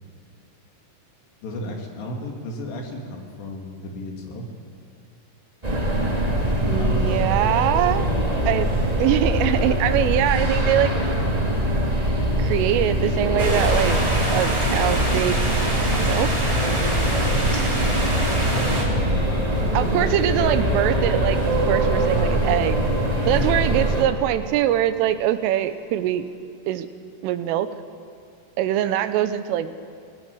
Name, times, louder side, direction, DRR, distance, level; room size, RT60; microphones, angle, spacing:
voice 1, 1.4-4.5 6.6-7.3 18.3-20.1 22.0-23.6, left 1 dB, 60° left, 1 dB, 4.4 m, -33 dB
sound 1, 5.6-24.0, equal, 40° right, 0.5 m, -23 dB
voice 2, 6.7-8.1 8.5-8.7 9.0-11.0 12.4-14.0 14.3-15.6 16.0-16.3 19.7-22.8 23.3-26.3 26.7-26.9 27.2-27.7 28.6-29.8, right 12 dB, 85° right, 11 dB, 3.4 m, -23 dB
sound 2, 13.4-18.8, right 1 dB, 10° right, 2.4 m, -26 dB
sound 3, 20.3-25.1, right 5 dB, 60° right, 4.2 m, -30 dB
22.0 x 17.5 x 8.5 m, 2.4 s
omnidirectional pair, 5.7 m